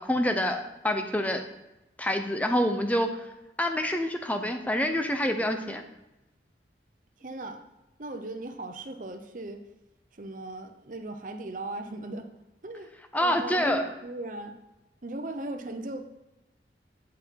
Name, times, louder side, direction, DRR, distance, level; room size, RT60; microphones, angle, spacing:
voice 1, 0.0-1.4 2.0-3.3 3.6-5.8 13.1-13.8, left 1 dB, 10° left, 6 dB, 0.7 m, -27 dB
voice 2, 7.2-7.6 8.0-9.6 10.1-12.3 12.6-12.9 13.2-14.5 15.0-16.0, right 2 dB, 50° right, 6 dB, 0.8 m, -37 dB
9.6 x 5.8 x 4.6 m, 0.97 s
head